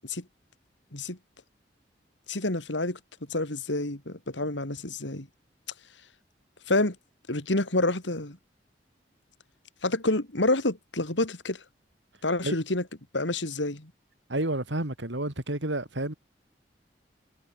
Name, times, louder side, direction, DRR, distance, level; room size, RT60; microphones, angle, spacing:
voice 1, 2.3-3.0 3.3-5.3 6.7-7.0 7.3-8.4 9.8-11.6 12.2-12.8 13.1-13.9, left 2 dB, 90° left, 3.5 m, -28 dB
voice 2, 14.3-16.1, right 1 dB, 90° right, 3.6 m, -30 dB
head